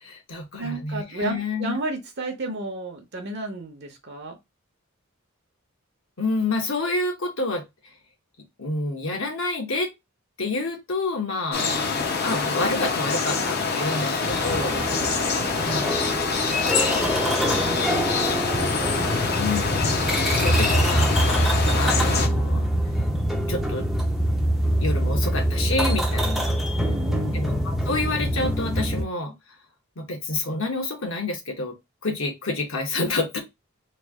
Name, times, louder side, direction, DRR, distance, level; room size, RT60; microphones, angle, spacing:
voice 1, 0.0-1.8 6.2-7.6 8.6-9.9 10.4-11.7 12.2-14.8 15.6-15.9 19.4-20.0 20.4-21.2 21.8-22.7 23.5-23.8 24.8-26.6 27.3-29.3 30.0-31.7 32.0-33.4, left 2 dB, 60° left, 1.1 m, -28 dB
voice 2, 0.6-4.4 11.6-12.1 13.9-15.4 16.9-19.0 26.8-27.4, right 2 dB, 50° right, 0.8 m, -34 dB
sound 1, 11.5-22.3, left 4 dB, 45° left, 0.7 m, -25 dB
sound 2, 14.3-29.0, equal, ahead, 0.5 m, -24 dB
3.1 x 2.4 x 3.5 m
head